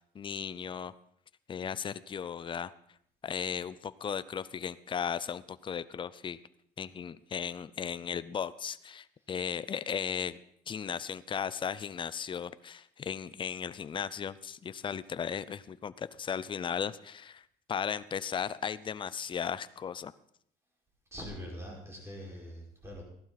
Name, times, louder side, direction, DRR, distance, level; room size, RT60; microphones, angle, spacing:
voice 1, 0.1-0.9 1.5-2.7 3.2-6.4 6.8-10.4 10.7-17.4 17.7-20.1, left 7 dB, 30° left, 16 dB, 0.5 m, -36 dB
voice 2, 21.1-23.0, equal, 15° right, -2 dB, 5.0 m, -43 dB
15.0 x 11.5 x 4.1 m, 0.69 s
cardioid pair, 110°, 17 cm